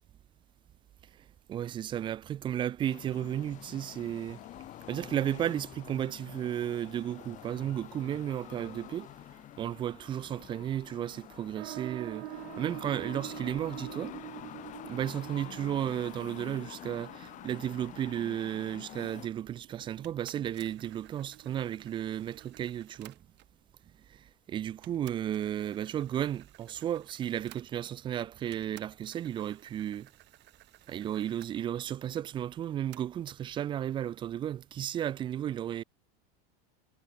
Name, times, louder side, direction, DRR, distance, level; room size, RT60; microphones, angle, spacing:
voice 1, 1.5-4.4 4.9-9.1 9.6-14.1 14.8-23.1 24.5-30.1 30.9-35.8, right 10 dB, 15° right, 0.4 m, -34 dB
sound 1, 2.8-19.3, left 14 dB, 25° left, 0.8 m, -47 dB
sound 2, 11.6-22.7, right 22 dB, 65° right, 3.1 m, -47 dB
sound 3, 20.0-23.6 24.3-24.4 24.8-28.1 28.5-31.5 32.9-33.4, right 17 dB, 35° right, 4.0 m, -57 dB
supercardioid pair, 160°, 30 cm